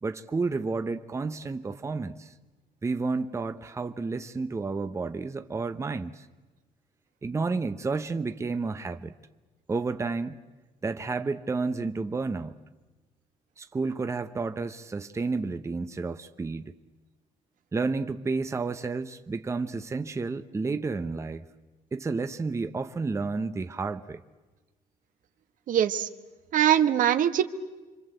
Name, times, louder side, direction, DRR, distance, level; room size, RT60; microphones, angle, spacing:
voice 1, 0.0-2.3 2.8-6.3 7.2-9.1 9.7-10.4 10.8-12.6 13.6-16.7 17.7-21.4 21.9-24.2, right 4 dB, 20° right, 0.9 m, -31 dB
voice 2, 25.7-26.1 26.5-27.4, right 10 dB, 65° right, 1.4 m, -22 dB
27.0 x 25.0 x 7.9 m
cardioid pair, 120°, 15 cm